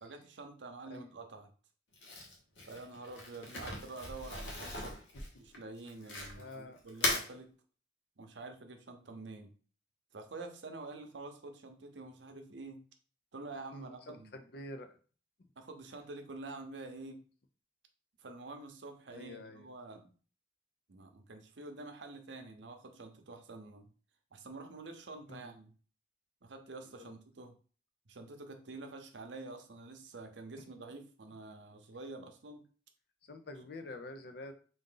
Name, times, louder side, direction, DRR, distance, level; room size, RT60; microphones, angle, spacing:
voice 1, 0.0-1.5 2.7-5.0 5.4-7.5 8.2-9.5 10.1-12.8 13.3-14.3 15.6-17.2 18.2-20.1 20.9-23.9 24.3-25.7 26.4-27.5 28.1-32.6, right 3 dB, 80° right, 5 dB, 0.7 m, -47 dB
Crumpling crinkling, 1.9-6.5 6.9-7.3, left 2 dB, 85° left, 1.1 m, -38 dB
voice 2, 6.4-6.8 9.1-9.2 13.7-14.9 19.1-19.7 25.3-25.5 27.0-27.1 33.2-34.5, left 2 dB, 60° left, 7 dB, 0.5 m, -47 dB
3.7 x 2.6 x 3.8 m, 0.40 s
head